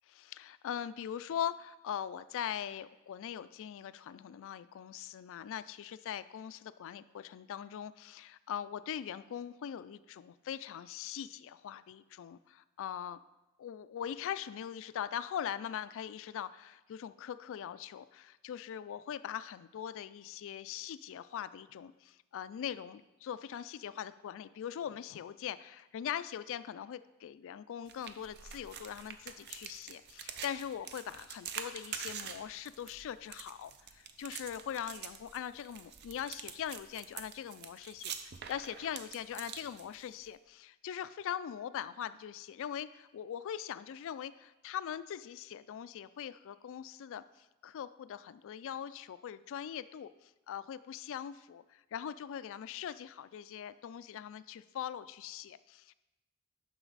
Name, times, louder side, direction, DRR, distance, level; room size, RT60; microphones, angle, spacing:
voice 1, 0.1-13.2 13.6-55.9, left 9 dB, 65° left, 15 dB, 0.3 m, -41 dB
sound 1, 27.9-40.3, right 7 dB, 50° right, 0.5 m, -46 dB
9.1 x 6.2 x 4.0 m, 1.0 s
head